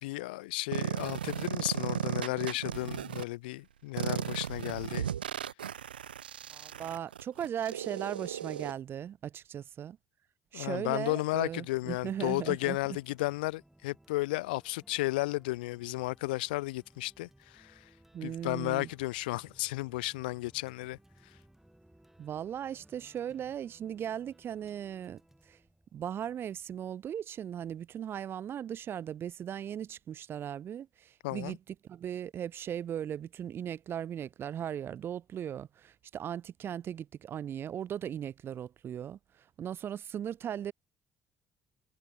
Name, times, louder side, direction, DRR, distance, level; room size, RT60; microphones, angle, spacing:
voice 1, 0.0-5.1 10.5-17.8 18.2-21.0 31.2-31.6, left 20 dB, 75° left, 1.6 m, -33 dB
sound 1, 0.7-3.2 4.0-8.7, right 9 dB, 85° right, 0.3 m, -35 dB
voice 2, 6.5-10.0 10.5-12.8 18.1-18.9 22.2-25.2 25.5-25.6 25.9-31.6 31.9-39.2 39.6-40.7, right 9 dB, 50° right, 1.5 m, -38 dB
sound 2, 11.4-26.7, right 1 dB, 5° right, 6.6 m, -62 dB
figure-of-eight pair, 50°, 5 cm